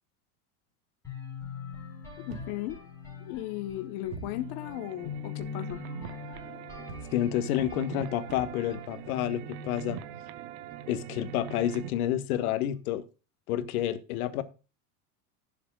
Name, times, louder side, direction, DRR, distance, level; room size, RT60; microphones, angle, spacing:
sound 1, 1.0-10.9, left 6 dB, 5° left, 6.8 m, -43 dB
voice 1, 2.3-2.8 3.2-5.8, left 14 dB, 45° left, 1.0 m, -36 dB
sound 2, 2.3-3.0 4.1-4.5 6.9-8.8, right 6 dB, 70° right, 2.4 m, -45 dB
sound 3, 4.2-11.9, right 12 dB, 50° right, 0.9 m, -43 dB
voice 2, 7.1-10.0 10.9-13.0 13.5-14.4, left 11 dB, 75° left, 1.5 m, -29 dB
18.5 x 7.4 x 2.3 m
supercardioid pair, 160°, 44 cm